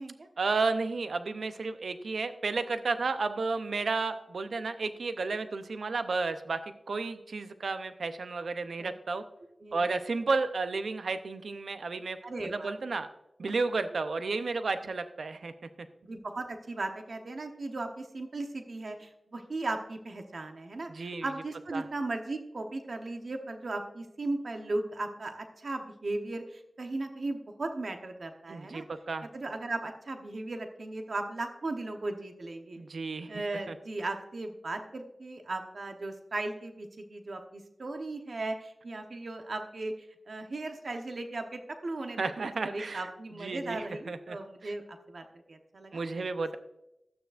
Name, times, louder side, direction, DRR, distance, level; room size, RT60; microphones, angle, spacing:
voice 1, 0.4-6.6 6.9-9.2 9.7-12.2 12.5-13.1 13.4-15.5 20.9-21.3 21.7-21.8 28.5-29.3 32.8-33.3 33.7-33.8 42.2-43.1 43.4-44.4 44.6-44.7 45.9-46.6, right 3 dB, 85° right, 10 dB, 0.6 m, -32 dB
voice 2, 12.2-12.7 16.0-28.9 29.3-32.8 33.3-39.9 40.3-42.2 42.6-46.3, right 2 dB, 70° right, 5 dB, 1.0 m, -37 dB
12.5 x 9.2 x 2.5 m, 0.86 s
wide cardioid pair, 55°, 0 cm